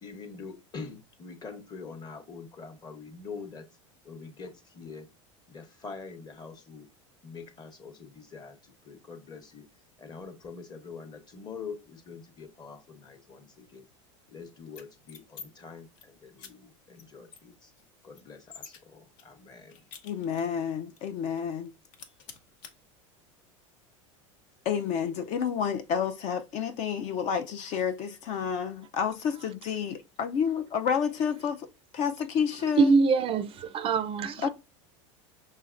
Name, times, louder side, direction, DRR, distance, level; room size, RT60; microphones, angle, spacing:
voice 1, 0.0-3.7 4.0-5.1 5.5-6.9 7.2-9.7 10.0-13.9 14.3-17.7 18.0-19.8, left 5 dB, 25° left, 0.9 m, -44 dB
sound 1, 14.7-15.5 15.8-16.0 16.4-16.5 16.9-17.0 17.3-18.8 19.2-20.6 21.0-21.1 21.4-21.7 21.9-22.7, left 6 dB, 65° left, 0.9 m, -48 dB
voice 2, 20.0-21.7 24.7-31.7 31.9-32.9 34.4-34.5, left 7 dB, 45° left, 0.5 m, -30 dB
voice 3, 32.8-34.5, right 4 dB, 35° right, 0.4 m, -23 dB
5.6 x 3.1 x 2.5 m
supercardioid pair, 115°, 16 cm